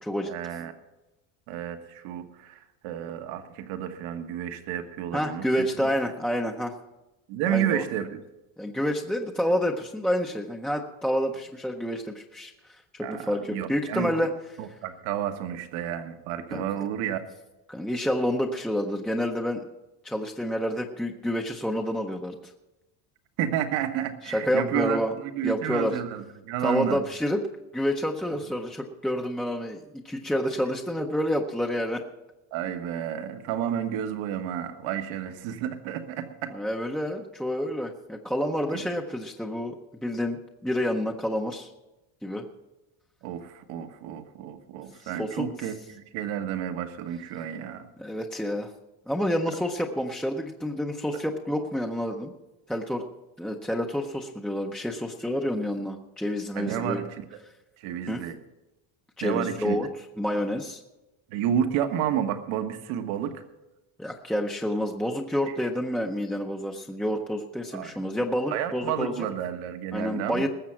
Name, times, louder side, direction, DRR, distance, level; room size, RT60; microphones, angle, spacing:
voice 1, 0.3-0.7 1.5-5.9 7.3-8.2 13.0-14.1 14.6-17.2 23.4-27.0 32.5-36.5 38.7-38.8 43.2-47.9 56.5-57.4 57.8-58.4 59.2-59.8 61.3-63.4 67.7-67.9 68.5-70.5, right 9 dB, 80° right, 7 dB, 1.5 m, -31 dB
voice 2, 5.1-6.7 7.5-7.8 8.6-14.3 16.5-16.6 17.7-19.6 20.0-22.5 24.2-25.2 25.4-26.0 26.6-27.4 27.7-32.0 36.5-39.7 40.0-41.7 42.2-42.5 45.0-45.5 48.0-48.7 49.1-52.3 52.7-53.0 53.4-57.0 58.1-58.2 59.2-59.9 60.2-60.8 64.0-69.3 69.9-70.5, equal, ahead, 1 dB, 0.5 m, -28 dB
20.0 x 7.5 x 5.8 m, 0.99 s
cardioid pair, 170°, 48 cm